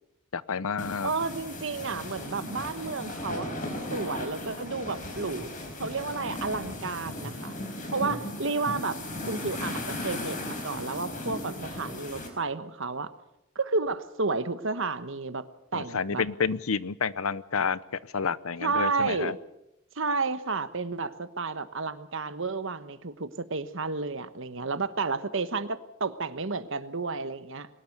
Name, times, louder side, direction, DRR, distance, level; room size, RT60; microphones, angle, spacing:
voice 1, 0.3-1.1 15.7-17.8 18.1-19.3, left 5 dB, 75° left, 18 dB, 0.8 m, -29 dB
sound 1, 0.8-12.3, left 1 dB, 40° left, 4.7 m, -36 dB
voice 2, 1.0-3.6 3.9-5.5 5.8-7.5 7.9-9.0 9.3-13.1 13.5-15.5 15.7-16.2 18.6-19.4 20.0-27.7, right 4 dB, 60° right, 12 dB, 1.2 m, -31 dB
22.5 x 19.5 x 6.7 m, 0.86 s
head